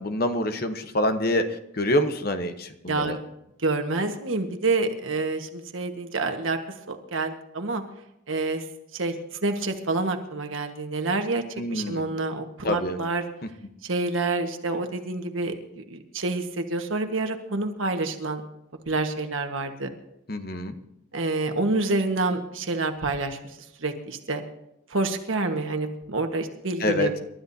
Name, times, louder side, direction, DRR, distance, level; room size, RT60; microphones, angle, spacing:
voice 1, 0.0-1.4 1.8-3.2 11.6-12.0 12.6-13.0 20.3-20.7 26.8-27.1, left 1 dB, 50° left, 8 dB, 1.0 m, -26 dB
voice 2, 2.9-3.2 3.6-6.6 6.9-7.8 8.3-8.6 8.9-9.1 9.4-11.4 11.7-13.2 13.8-18.4 18.9-19.9 21.1-23.4 23.8-24.4 24.9-27.2, right 3 dB, 80° right, 5 dB, 1.4 m, -27 dB
28.0 x 12.5 x 2.8 m, 0.85 s
head